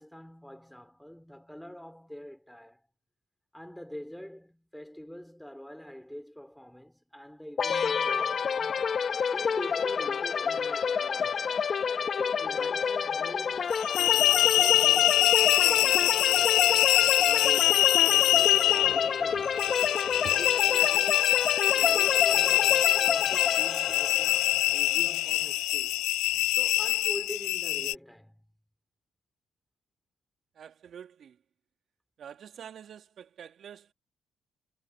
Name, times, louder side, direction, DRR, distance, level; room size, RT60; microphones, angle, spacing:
voice 1, 0.0-2.9 3.5-9.0 9.3-11.6 12.2-16.5 17.3-19.7 20.3-21.3 21.7-26.1 26.5-28.4, equal, 5° left, 4.0 m, -45 dB
sound 1, 7.6-25.2, left 6 dB, 50° left, 1.5 m, -29 dB
sound 2, 13.7-27.9, left 17 dB, 90° left, 0.4 m, -24 dB
voice 2, 30.5-31.4 32.2-33.9, right 8 dB, 60° right, 2.6 m, -46 dB
cardioid pair, 75°, 0 cm